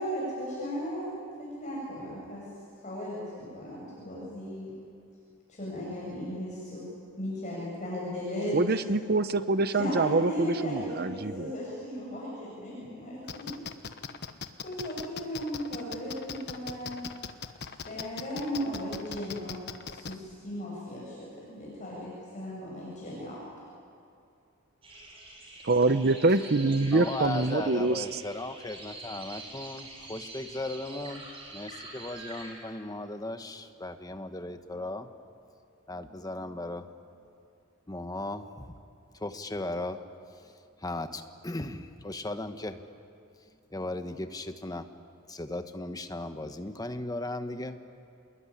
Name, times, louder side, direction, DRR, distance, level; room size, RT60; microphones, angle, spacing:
voice 1, 0.0-2.5 2.7-4.7 5.5-6.8 7.2-8.6 9.7-13.5 14.6-17.1 17.8-23.4, equal, 35° left, -5 dB, 7.2 m, -36 dB
voice 2, 8.5-11.5 25.6-28.2, right 3 dB, 50° right, 11 dB, 0.8 m, -25 dB
sound 1, 13.3-20.1, left 6 dB, 50° left, 1.2 m, -39 dB
sound 2, 24.8-32.5, right 2 dB, 25° right, 6.9 m, -45 dB
voice 3, 26.9-31.3 31.5-35.1 35.9-36.9 37.9-38.8 39.2-40.0 40.4-40.5 40.8-42.8 43.7-44.9 45.3-47.8, left 2 dB, 20° left, 8 dB, 1.2 m, -37 dB
27.5 x 21.0 x 9.9 m, 2.4 s
head